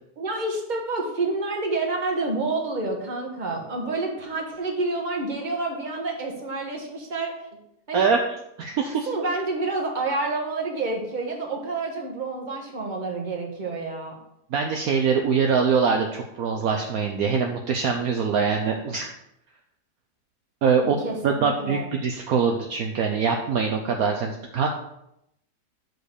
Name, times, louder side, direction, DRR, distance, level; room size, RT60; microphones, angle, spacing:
voice 1, 0.2-7.5 7.9-8.1 9.1-14.2 20.8-21.9, right 3 dB, 30° right, 1 dB, 1.4 m, -28 dB
voice 2, 8.6-9.1 14.5-19.1 20.6-21.0 21.2-24.7, right 5 dB, 65° right, 3 dB, 1.1 m, -23 dB
6.1 x 5.2 x 6.6 m, 0.82 s
omnidirectional pair, 1.8 m